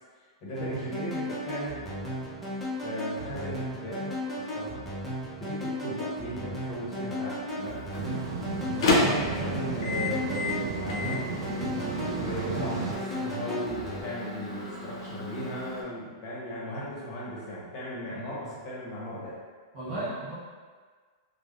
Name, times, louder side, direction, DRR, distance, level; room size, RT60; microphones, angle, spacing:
voice 1, 0.4-1.8 2.8-4.8 5.4-7.8 8.9-11.2 12.2-19.4 19.8-20.1, equal, 30° left, -7 dB, 0.8 m, -37 dB
sound 1, 0.6-14.0, equal, 5° left, 0.5 m, -35 dB
Microwave oven, 7.6-15.8, left 2 dB, 85° left, 0.5 m, -32 dB
sound 2, 8.0-12.9, right 5 dB, 65° right, 0.3 m, -34 dB
voice 2, 18.1-18.4 19.7-20.3, right 2 dB, 35° right, -10 dB, 1.1 m, -36 dB
3.2 x 2.0 x 2.4 m, 1.5 s
supercardioid pair, 165°, 3 cm